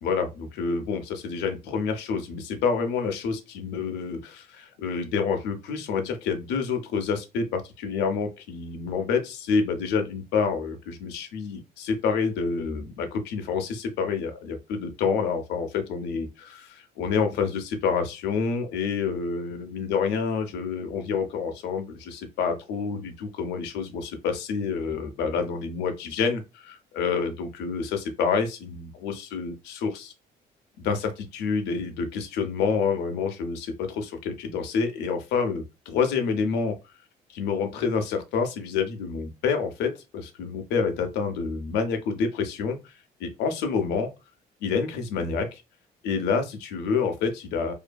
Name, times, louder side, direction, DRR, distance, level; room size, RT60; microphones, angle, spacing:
voice 1, 0.0-30.1 30.8-36.8 37.3-42.9 43.2-44.1 44.6-45.6 46.0-47.7, left 5 dB, 85° left, 0.6 m, -28 dB
2.6 x 2.6 x 2.2 m
cardioid pair, 110°, 17 cm